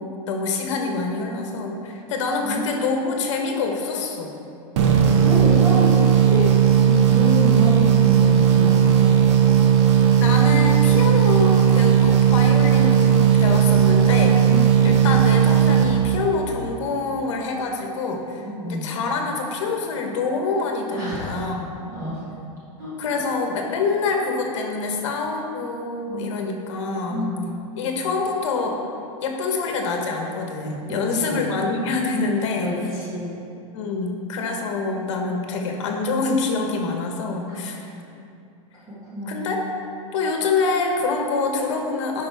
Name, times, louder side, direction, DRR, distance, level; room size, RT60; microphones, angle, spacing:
voice 1, 0.0-4.3 10.2-14.4 14.8-21.7 23.0-27.3 27.8-28.8 29.2-32.8 33.7-37.9 39.3-39.6 40.1-42.3, left 4 dB, 60° left, 2 dB, 1.2 m, -26 dB
sound 1, 4.8-16.5, right 8 dB, 55° right, 0.8 m, -16 dB
voice 2, 5.1-6.5 6.8-9.6 14.5-15.1 18.4-18.9 20.9-21.4 21.9-22.2 22.8-23.2 26.0-26.5 27.1-27.6 31.1-31.6 32.6-33.4 37.5-37.7 39.0-39.7, left 1 dB, 15° right, -10 dB, 1.4 m, -29 dB
10.5 x 5.2 x 3.5 m, 2.6 s
supercardioid pair, 175°, 18 cm